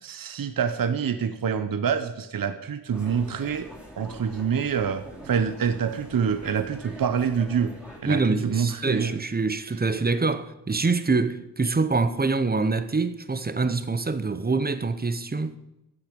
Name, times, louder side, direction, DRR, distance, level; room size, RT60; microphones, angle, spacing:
voice 1, 0.0-3.7 4.0-7.7 8.0-9.2, right 7 dB, 55° right, 0.8 m, -26 dB
sound 1, 2.9-8.0, right 1 dB, 5° right, 3.1 m, -44 dB
voice 2, 8.0-15.6, right 3 dB, 25° right, 0.7 m, -25 dB
14.0 x 10.5 x 5.2 m
wide cardioid pair, 125°, 40 cm